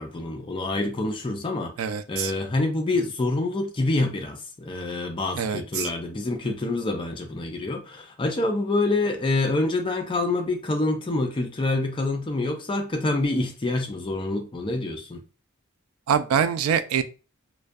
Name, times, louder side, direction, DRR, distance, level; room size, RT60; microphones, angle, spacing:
voice 1, 0.0-1.7 2.1-15.2, left 2 dB, 25° left, 0.4 m, -26 dB
voice 2, 1.8-2.3 5.4-5.9 16.1-17.0, right 7 dB, 85° right, 0.3 m, -24 dB
2.3 x 2.2 x 2.5 m
head